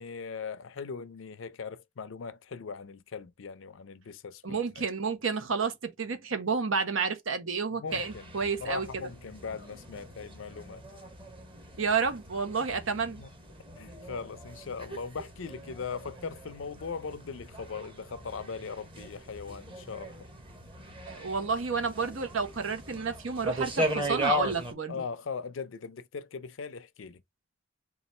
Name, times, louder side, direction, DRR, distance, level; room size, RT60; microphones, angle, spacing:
voice 1, 0.0-4.6 7.7-8.3 8.6-10.8 13.2-13.3 13.8-20.3 24.9-27.2, left 5 dB, 75° left, 0.5 m, -39 dB
voice 2, 4.4-9.1 11.8-13.2 21.1-24.9, right 5 dB, 80° right, 0.9 m, -30 dB
sound 1, 7.9-24.7, equal, 25° right, 1.0 m, -38 dB
3.9 x 2.4 x 4.2 m
head